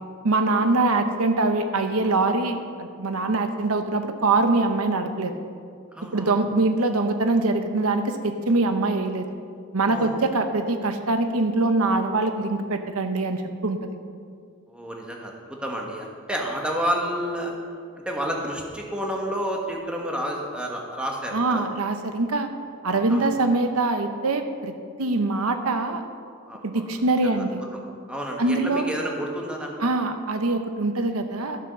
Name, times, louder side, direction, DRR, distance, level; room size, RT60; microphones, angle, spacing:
voice 1, 0.2-5.3 6.0-9.2 9.7-13.8 21.3-22.5 22.8-24.7 25.0-26.0 26.6-27.6 28.4-28.9 29.8-31.6, right 2 dB, 85° right, 7 dB, 0.9 m, -23 dB
voice 2, 5.9-6.3 9.9-10.1 14.7-15.3 15.6-17.5 18.0-21.6 23.1-23.3 26.5-26.8 27.3-27.4 28.1-29.7, equal, 5° right, -1 dB, 1.3 m, -30 dB
12.5 x 7.1 x 6.2 m, 2.1 s
head